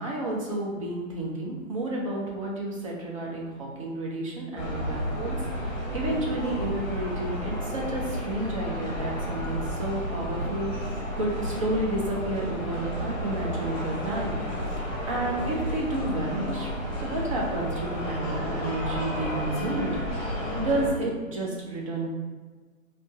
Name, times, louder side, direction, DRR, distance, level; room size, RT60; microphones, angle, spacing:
voice 1, 0.0-16.7 17.0-22.1, right 1 dB, 25° right, -2 dB, 0.5 m, -31 dB
sound 1, 4.6-20.9, equal, 25° left, 1.0 m, -32 dB
3.1 x 2.8 x 2.9 m, 1.4 s
hypercardioid pair, 145°, 42 cm